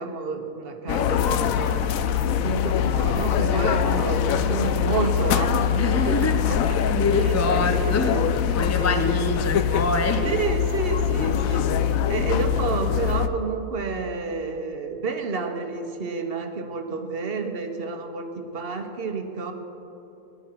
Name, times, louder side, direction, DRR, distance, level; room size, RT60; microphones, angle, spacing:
voice 1, 0.0-1.8 2.2-6.8 7.2-8.2 8.5-9.2 10.2-19.5, right 4 dB, 45° right, 5 dB, 1.1 m, -30 dB
sound 1, 0.9-13.3, left 8 dB, 70° left, 1.0 m, -23 dB
voice 2, 5.7-6.3 6.6-8.2 8.5-10.2, left 3 dB, 20° left, 6 dB, 0.4 m, -25 dB
20.0 x 11.5 x 4.7 m, 2.9 s
omnidirectional pair, 1.6 m